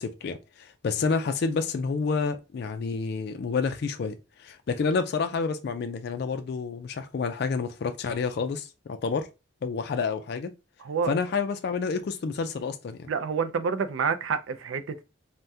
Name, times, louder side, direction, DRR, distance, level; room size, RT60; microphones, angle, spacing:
voice 1, 0.0-9.3 9.6-10.5 11.0-13.1, left 5 dB, 55° left, 0.3 m, -29 dB
voice 2, 10.8-11.1 13.1-15.0, right 6 dB, 80° right, 0.4 m, -28 dB
3.4 x 2.1 x 2.7 m
head